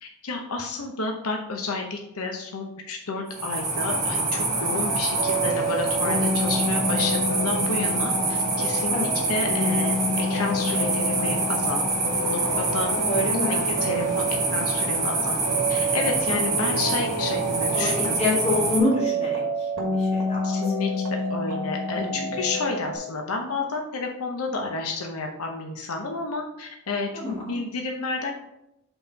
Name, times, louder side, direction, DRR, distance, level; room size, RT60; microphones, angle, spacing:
voice 1, 0.0-12.9 13.5-15.4 15.7-18.1 20.4-20.9 21.3-27.1 27.5-28.3, left 3 dB, 85° left, 2 dB, 0.8 m, -31 dB
sound 1, 3.3-18.8, right 3 dB, 30° right, 2.2 m, -26 dB
sound 2, 4.4-23.0, equal, 65° right, 1.6 m, -29 dB
voice 2, 13.1-14.3 17.7-21.0 21.9-22.3 27.1-27.6, left 2 dB, 30° left, -5 dB, 2.3 m, -28 dB
5.4 x 4.3 x 5.7 m, 0.85 s
head